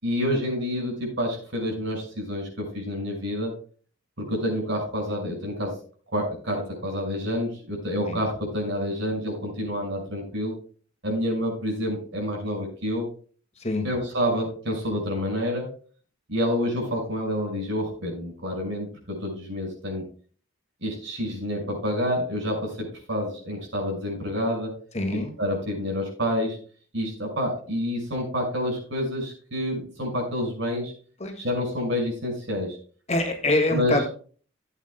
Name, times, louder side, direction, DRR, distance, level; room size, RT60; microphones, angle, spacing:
voice 1, 0.0-3.6 4.2-5.8 6.1-10.6 11.0-13.1 13.8-15.7 16.3-20.1 20.8-24.8 25.1-26.6 26.9-30.9 31.4-32.8 33.7-33.9, equal, 65° right, 0 dB, 5.9 m, -28 dB
voice 2, 24.9-25.3 31.2-31.5 33.1-34.1, left 1 dB, 35° left, 3 dB, 1.9 m, -25 dB
17.0 x 8.4 x 2.2 m, 0.41 s
head